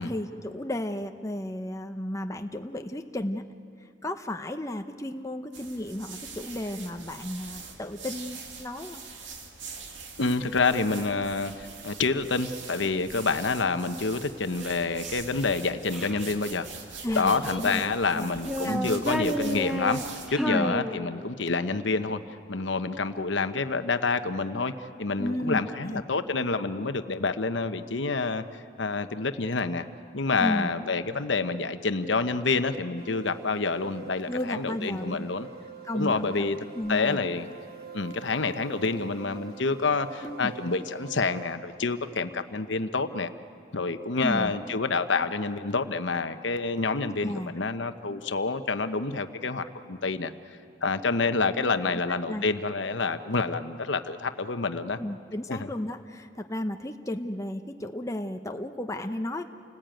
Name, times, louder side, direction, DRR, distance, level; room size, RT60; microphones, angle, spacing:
voice 1, 0.0-3.4 4.0-9.0 17.0-17.9 18.1-18.4 18.6-18.9 20.4-20.7 25.2-26.0 30.4-30.7 34.3-35.3 35.8-36.5 36.7-37.2 40.2-40.5 44.2-44.5 47.2-47.5 51.9-52.4 55.0-59.4, left 1 dB, 15° left, 5 dB, 0.8 m, -33 dB
sound 1, 5.5-20.3, right 5 dB, 75° right, 2.4 m, -43 dB
voice 2, 10.2-16.7 17.1-20.0 20.3-22.2 22.5-29.9 30.1-35.5 35.9-36.6 36.9-37.5 37.9-43.3 43.7-50.3 50.8-55.0 55.5-55.7, left 4 dB, 75° left, 9 dB, 1.0 m, -28 dB
Child speech kid speaking, 14.6-16.3 17.1-17.9 18.4-21.5, equal, ahead, 1.2 m, -33 dB
sound 2, 33.0-41.5, right 9 dB, 50° right, 1.5 m, -45 dB
29.0 x 19.5 x 9.1 m, 2.5 s
head